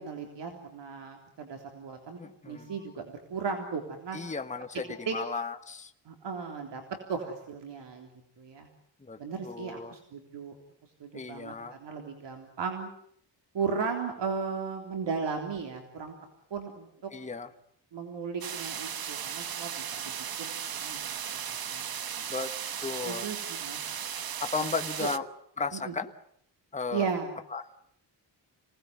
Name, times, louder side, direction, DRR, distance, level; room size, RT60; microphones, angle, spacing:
voice 1, 0.0-2.2 2.5-4.2 5.1-5.2 6.1-6.8 7.1-8.1 8.4-8.7 9.2-10.6 11.0-12.9 13.5-16.2 16.5-17.1 17.9-22.2 23.0-23.8 24.6-24.7 25.0-25.1 25.7-25.9 26.9-27.3, right 5 dB, 70° right, 3 dB, 3.6 m, -36 dB
voice 2, 2.2-2.7 4.1-5.9 9.0-9.2 9.4-9.9 11.1-11.7 17.1-17.5 22.3-23.3 24.4-25.3 25.6-26.1 26.7-27.1 27.5-27.7, left 4 dB, 15° left, 7 dB, 1.3 m, -35 dB
sound 1, 18.4-25.2, right 8 dB, 50° right, 1.2 m, -36 dB
27.0 x 19.0 x 9.6 m, 0.69 s
wide cardioid pair, 120°, 45 cm